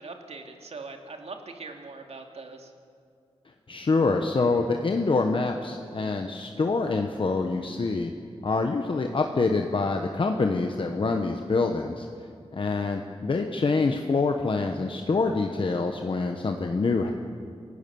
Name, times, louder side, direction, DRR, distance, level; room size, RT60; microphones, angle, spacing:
voice 1, 0.0-2.7, right 3 dB, 70° right, 4 dB, 2.3 m, -41 dB
voice 2, 3.7-8.1 8.4-12.1 12.5-17.1, left 3 dB, 50° left, 4 dB, 1.1 m, -26 dB
27.0 x 17.0 x 7.0 m, 2.4 s
wide cardioid pair, 125°, 11 cm